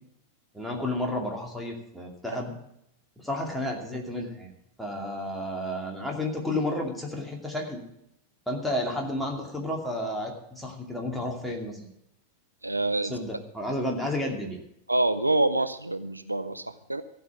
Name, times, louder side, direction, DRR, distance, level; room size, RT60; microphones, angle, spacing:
voice 1, 0.5-2.5 3.2-4.5 4.8-7.8 8.5-11.8 13.0-14.6, left 1 dB, ahead, -1 dB, 2.5 m, -31 dB
voice 2, 12.6-13.2 14.9-17.0, right 2 dB, 85° right, 11 dB, 0.5 m, -26 dB
14.5 x 5.7 x 8.7 m, 0.78 s
figure-of-eight pair, 90°, 0 cm